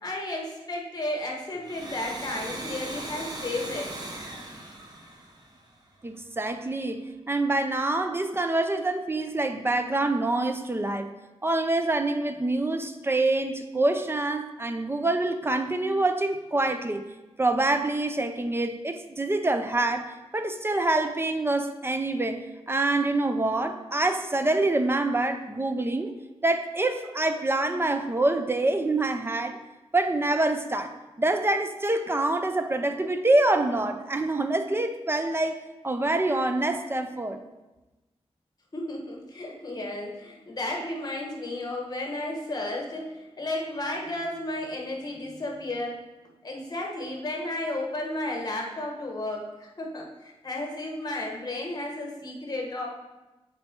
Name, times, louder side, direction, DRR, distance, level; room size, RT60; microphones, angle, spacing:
voice 1, 0.0-3.9 38.7-46.0 46.4-52.9, left 1 dB, 35° left, 0 dB, 1.3 m, -33 dB
Domestic sounds home sounds, 1.5-6.0, right 1 dB, 40° right, 1.1 m, -39 dB
voice 2, 6.0-7.0 7.3-11.1 11.4-17.0 17.4-26.1 26.4-29.6 29.9-30.9 31.2-37.4, right 2 dB, 20° right, 8 dB, 0.5 m, -26 dB
7.6 x 4.4 x 4.4 m, 1.1 s
wide cardioid pair, 120°, 11 cm